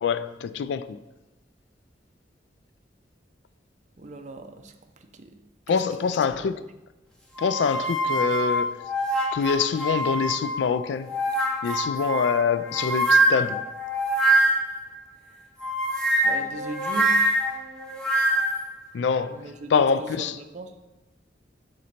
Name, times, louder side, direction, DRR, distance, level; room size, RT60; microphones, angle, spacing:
voice 1, 0.0-1.0 5.7-6.6 7.4-8.9 9.3-11.1 11.6-13.7 18.9-20.4, left 6 dB, 85° left, 0.3 m, -25 dB
voice 2, 4.0-4.7 5.2-5.4 16.2-17.2 19.3-19.7 20.4-20.7, right 2 dB, 40° right, 0.5 m, -38 dB
sound 1, 7.4-10.6 11.1-14.8 15.6-18.7, right 1 dB, 5° left, 0.8 m, -24 dB
6.2 x 4.0 x 4.3 m
head